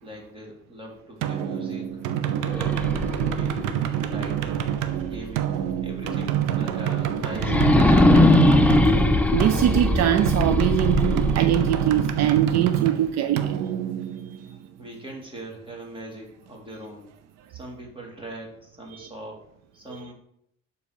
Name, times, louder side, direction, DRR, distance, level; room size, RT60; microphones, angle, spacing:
voice 1, 0.0-2.0 2.4-3.7 4.1-4.7 5.0-5.5 5.8-8.2 14.8-17.1 17.5-19.4 19.7-20.1, right 1 dB, 15° right, -1 dB, 2.5 m, -41 dB
sound 1, 1.2-14.8, right 10 dB, 80° right, 0.8 m, -27 dB
sound 2, 2.4-5.4 5.9-6.0 7.3-12.4, left 2 dB, 5° left, 0.5 m, -21 dB
voice 2, 9.3-13.6 14.4-14.5 18.9-19.1, right 11 dB, 60° right, 10 dB, 0.5 m, -22 dB
7.2 x 4.2 x 6.6 m, 0.73 s
cardioid pair, 120°, 31 cm